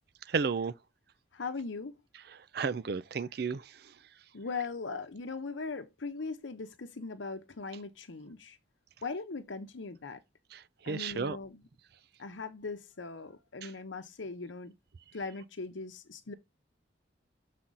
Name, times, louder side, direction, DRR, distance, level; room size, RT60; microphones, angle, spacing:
voice 1, 0.3-0.7 2.5-3.7 10.5-11.4 13.6-13.7, right 5 dB, 55° right, 0.5 m, -33 dB
voice 2, 1.3-1.9 4.3-8.6 9.0-10.2 10.8-11.6 12.2-14.7 15.1-16.3, left 4 dB, 90° left, 0.9 m, -39 dB
7.5 x 4.2 x 3.9 m
head